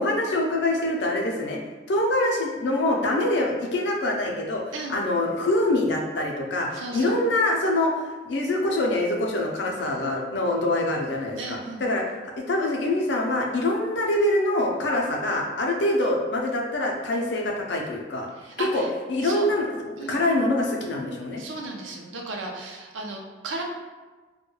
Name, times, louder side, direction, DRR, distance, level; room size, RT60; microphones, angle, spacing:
voice 1, 0.0-1.6 1.9-8.0 8.2-18.3 18.6-21.4, left 1 dB, 70° left, 1 dB, 0.4 m, -25 dB
voice 2, 4.7-5.0 6.7-7.1 11.4-11.8 18.4-18.9 19.2-19.5 20.0-20.2 21.4-23.6, right 2 dB, 90° right, 1 dB, 0.4 m, -35 dB
2.2 x 2.2 x 3.0 m, 1.3 s
head